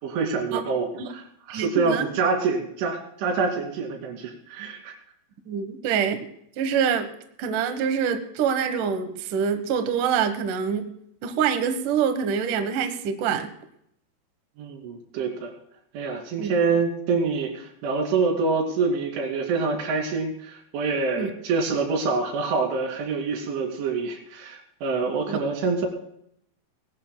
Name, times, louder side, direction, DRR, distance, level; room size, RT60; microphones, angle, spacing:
voice 1, 0.0-5.0 14.6-15.5 15.9-25.9, right 4 dB, 85° right, 2 dB, 5.1 m, -26 dB
voice 2, 1.5-2.1 5.5-6.2 6.6-7.1 7.4-10.9 11.2-13.5 16.4-16.5 21.1-21.3 25.3-25.4, right 7 dB, 65° right, 8 dB, 2.1 m, -25 dB
22.0 x 17.5 x 2.3 m, 0.72 s
omnidirectional pair, 5.4 m